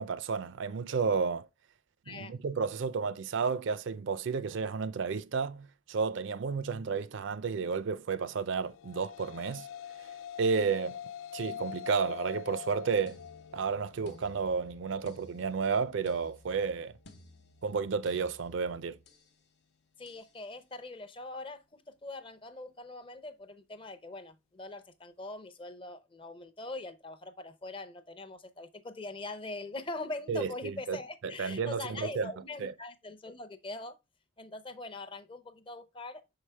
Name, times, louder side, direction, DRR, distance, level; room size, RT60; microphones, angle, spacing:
voice 1, 0.0-1.5 2.1-9.7 10.4-11.0 11.3-13.2 13.5-16.9 17.6-19.0 30.3-31.0 31.4-32.3 32.6-32.7, right 5 dB, 60° right, 0.4 m, -32 dB
sound 1, 8.5-17.1, left 9 dB, 80° left, 0.4 m, -45 dB
sound 2, 13.1-19.3 20.1-20.3, left 1 dB, 55° left, 0.8 m, -55 dB
voice 2, 20.0-34.0 34.4-36.4, left 2 dB, 25° left, 0.5 m, -42 dB
6.1 x 4.8 x 3.3 m
head